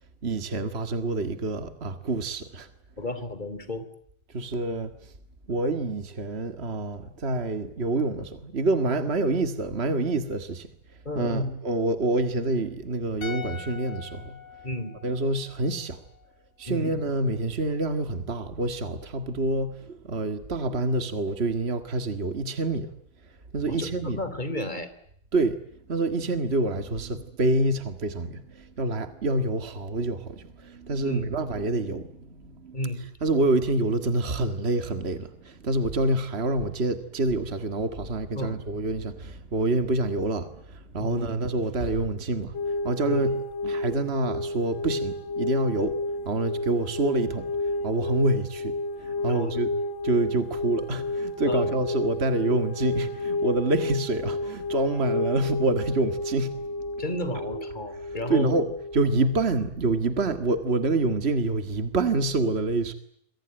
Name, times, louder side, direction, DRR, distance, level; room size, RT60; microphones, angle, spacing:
voice 1, 0.2-2.7 4.3-4.9 5.5-10.7 11.1-14.4 15.0-16.0 16.6-22.9 23.5-24.2 25.3-25.6 25.9-32.8 33.2-49.7 50.0-56.6 58.3-62.9, right 2 dB, 40° right, 0.8 m, -27 dB
voice 2, 3.0-3.8 11.0-11.5 14.6-14.9 16.7-16.9 23.7-24.9 31.0-31.3 32.7-33.1 38.3-38.6 41.0-41.2 43.0-43.2 49.3-49.6 51.4-51.7 57.0-58.6, left 1 dB, 15° left, 3.2 m, -32 dB
sound 1, 13.2-16.4 16.7-16.8, left 7 dB, 80° left, 4.9 m, -43 dB
sound 2, 42.5-59.4, left 2 dB, 60° left, 1.2 m, -31 dB
27.5 x 23.5 x 9.1 m
omnidirectional pair, 4.1 m